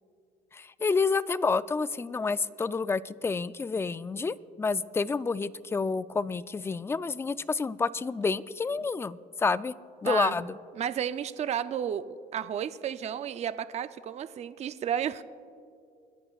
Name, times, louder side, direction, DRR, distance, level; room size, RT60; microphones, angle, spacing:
voice 1, 0.5-9.7 10.0-10.6, left 4 dB, 15° left, 16 dB, 0.3 m, -29 dB
voice 2, 10.0-10.5 10.8-15.2, right 9 dB, 40° right, 12 dB, 0.5 m, -32 dB
29.0 x 11.0 x 2.4 m, 2.3 s
cardioid pair, 110°, 17 cm